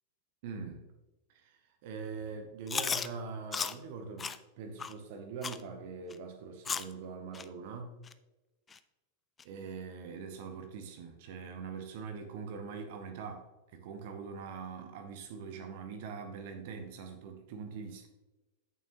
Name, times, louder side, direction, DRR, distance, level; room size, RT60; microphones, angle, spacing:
voice 1, 0.4-0.9 1.3-7.9 9.4-18.1, right 5 dB, 50° right, 6 dB, 0.9 m, -43 dB
Chewing mastication, 2.7-3.1 3.5-3.7 4.2-4.4 4.8-4.9 5.4-5.6 6.1-6.2 6.6-6.9 7.3-7.4 8.1-8.2 8.7-8.8 9.4-9.5, left 6 dB, 20° left, 0.4 m, -34 dB
8.5 x 6.9 x 3.0 m, 1.1 s
figure-of-eight pair, 90°, 0 cm